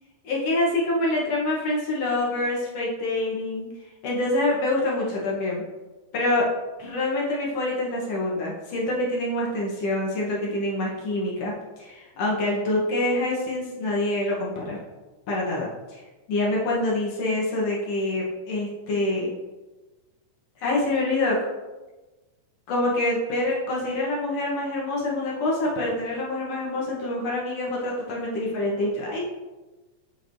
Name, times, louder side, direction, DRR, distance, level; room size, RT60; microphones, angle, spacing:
voice 1, 0.2-3.7 4.0-5.6 6.1-6.5 6.8-14.8 15.3-16.0 16.3-19.3 20.6-21.4 22.7-29.2, left 2 dB, 65° left, -4 dB, 2.0 m, -26 dB
7.6 x 5.0 x 2.6 m, 1.2 s
omnidirectional pair, 3.5 m